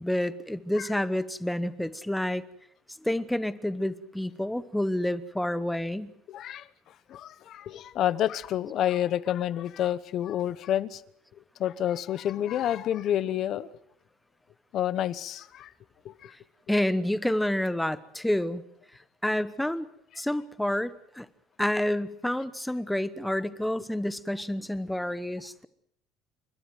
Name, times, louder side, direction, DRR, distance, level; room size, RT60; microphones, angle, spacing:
voice 1, 0.0-2.4 3.0-6.1 16.7-18.6 19.2-19.9 20.2-21.3 21.6-25.7, left 1 dB, 5° left, 1.0 m, -29 dB
voice 2, 6.3-6.7 7.1-11.0 11.6-13.7 14.7-15.7 16.0-16.3, left 11 dB, 45° left, 1.0 m, -29 dB
29.0 x 13.0 x 9.2 m
cardioid pair, 150°, 0 cm